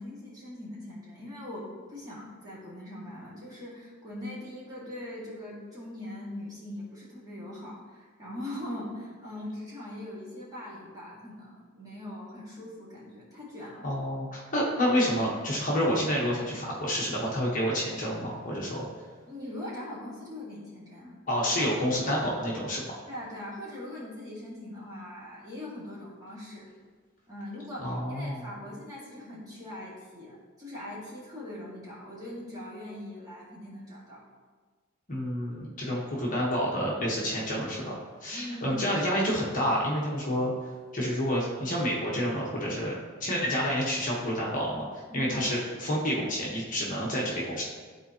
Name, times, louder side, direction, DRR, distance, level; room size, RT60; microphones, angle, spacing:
voice 1, 0.0-13.9 19.3-21.2 23.1-26.7 27.3-34.2 38.3-38.8 45.1-45.4, left 1 dB, 15° right, -7 dB, 1.9 m, -41 dB
voice 2, 13.8-18.8 21.3-22.9 27.8-28.5 35.1-40.5 40.9-42.9 43.2-47.6, equal, 35° left, -4 dB, 1.2 m, -29 dB
12.5 x 4.3 x 2.9 m, 1.5 s
head